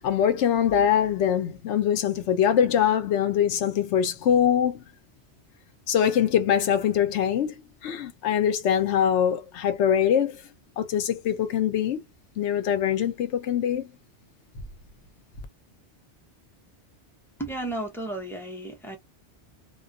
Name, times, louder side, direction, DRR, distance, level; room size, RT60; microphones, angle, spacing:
voice 1, 0.0-4.8 5.9-7.5 7.8-10.4 10.8-12.0 12.4-13.9, left 9 dB, 80° left, 1.0 m, -23 dB
voice 2, 17.4-19.0, right 1 dB, 5° left, 0.6 m, -33 dB
2.3 x 2.2 x 2.3 m
omnidirectional pair, 1.2 m